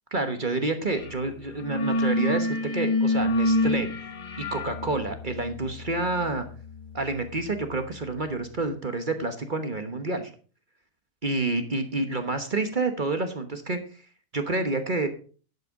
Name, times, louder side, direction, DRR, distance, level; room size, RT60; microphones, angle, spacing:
voice 1, 0.1-3.9 4.4-6.5 6.9-10.3 11.2-14.0 14.3-15.1, right 2 dB, 35° right, 7 dB, 1.2 m, -28 dB
sound 1, 0.9-1.2 1.4-8.1, left 1 dB, 40° left, 0.9 m, -28 dB
11.0 x 7.8 x 4.7 m, 0.40 s
omnidirectional pair, 1.6 m